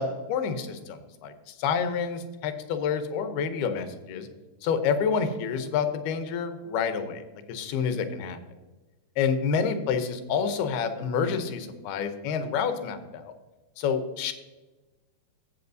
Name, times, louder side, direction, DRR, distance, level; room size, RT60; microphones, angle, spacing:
voice 1, 0.0-4.3 4.6-7.2 7.5-8.4 9.2-13.3 13.8-14.3, left 6 dB, 75° left, 8 dB, 2.6 m, -28 dB
14.5 x 7.6 x 2.7 m, 1.2 s
omnidirectional pair, 4.8 m